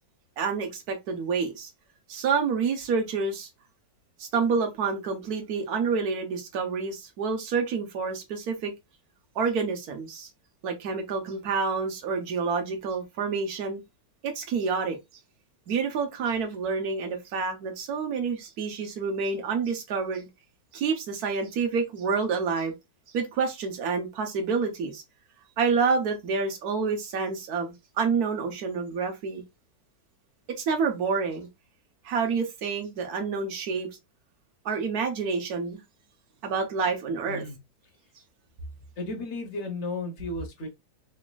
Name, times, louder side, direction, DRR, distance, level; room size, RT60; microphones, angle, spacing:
voice 1, 0.4-1.7 2.1-3.5 4.2-8.7 9.3-10.3 10.6-13.8 14.2-15.0 15.7-20.3 20.7-22.7 23.1-25.0 25.6-29.4 30.6-31.5 32.0-33.9 34.6-35.8 36.4-37.4, right 5 dB, 60° right, 1.5 m, -28 dB
voice 2, 39.0-40.7, left 2 dB, 45° left, 1.3 m, -34 dB
5.1 x 2.8 x 2.3 m
omnidirectional pair, 1.9 m